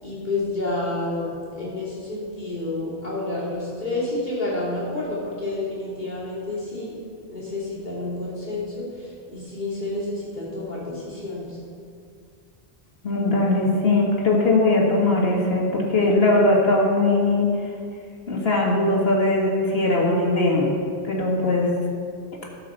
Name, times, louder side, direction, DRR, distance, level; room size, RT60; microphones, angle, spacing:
voice 1, 0.0-7.0 7.3-11.6, left 2 dB, 45° left, -8 dB, 3.2 m, -29 dB
voice 2, 13.0-17.5 18.3-20.7 21.0-21.7, left 2 dB, 70° left, -2 dB, 1.9 m, -20 dB
12.5 x 5.0 x 6.7 m, 2.3 s
omnidirectional pair, 1.1 m